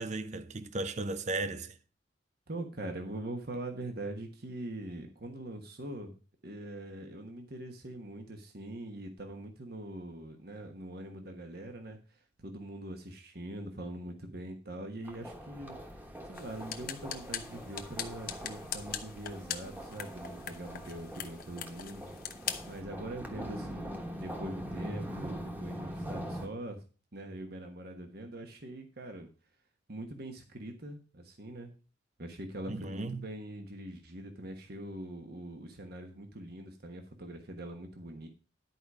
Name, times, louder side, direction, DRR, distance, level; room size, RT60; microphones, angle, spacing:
voice 1, 0.0-1.7 32.7-33.3, right 2 dB, 40° right, 0.6 m, -36 dB
voice 2, 2.5-6.2 6.4-22.1 22.7-26.8 27.1-29.3 29.9-31.8 32.2-38.3, right 1 dB, 55° right, 1.2 m, -43 dB
sound 1, 15.0-26.5, equal, 10° right, 1.3 m, -43 dB
sound 2, 16.3-22.8, left 9 dB, 50° left, 0.9 m, -42 dB
11.0 x 4.9 x 6.1 m
head